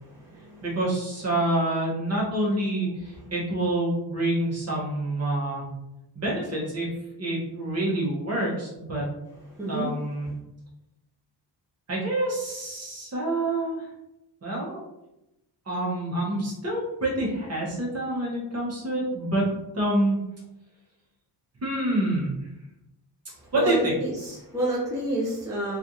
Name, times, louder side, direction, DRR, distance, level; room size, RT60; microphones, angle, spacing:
voice 1, 0.0-0.6 9.5-9.9 23.4-25.8, right 1 dB, 10° right, -6 dB, 0.5 m, -29 dB
voice 2, 0.6-5.6 6.1-6.9 7.2-9.0 9.7-10.3 11.9-13.9 14.4-14.8 15.7-19.5 19.7-20.2 21.6-22.3 23.5-23.9, right 1 dB, 35° right, -4 dB, 1.0 m, -27 dB
3.1 x 2.5 x 2.7 m, 0.90 s
wide cardioid pair, 170°, 42 cm